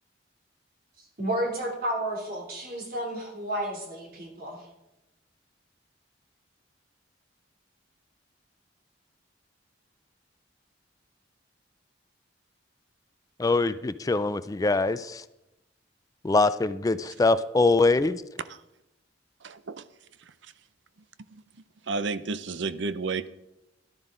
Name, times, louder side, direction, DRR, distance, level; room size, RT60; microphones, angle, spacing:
voice 1, 1.2-4.7, right 1 dB, 50° right, 1 dB, 2.9 m, -31 dB
voice 2, 13.4-15.2 16.2-18.2, left 3 dB, 20° left, 13 dB, 0.3 m, -23 dB
voice 3, 19.4-19.8 21.3-21.4 21.9-23.3, right 4 dB, 70° right, 14 dB, 0.6 m, -31 dB
12.5 x 12.0 x 3.8 m, 0.90 s
head